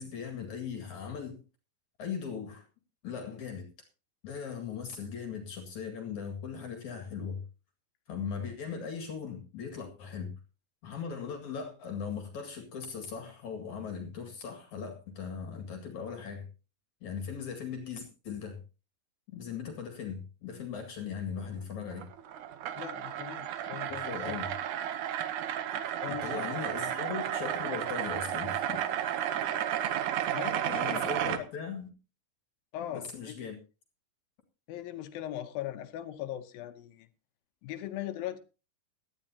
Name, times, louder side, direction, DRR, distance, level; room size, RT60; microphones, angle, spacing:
voice 1, 0.0-1.4 2.0-2.6 3.0-3.7 4.2-7.4 8.1-10.3 10.8-16.5 17.0-18.6 19.3-22.1 23.9-24.5 26.1-29.2 30.7-31.9 32.9-33.6, left 6 dB, 55° left, 3.1 m, -39 dB
sound 1, 21.9-31.4, right 10 dB, 70° right, 2.1 m, -33 dB
voice 2, 22.8-24.4 26.0-26.6 30.3-31.0 31.4-31.5 32.7-33.5 34.7-37.1 37.6-38.4, left 12 dB, 75° left, 2.6 m, -40 dB
18.0 x 12.5 x 2.8 m
omnidirectional pair, 4.4 m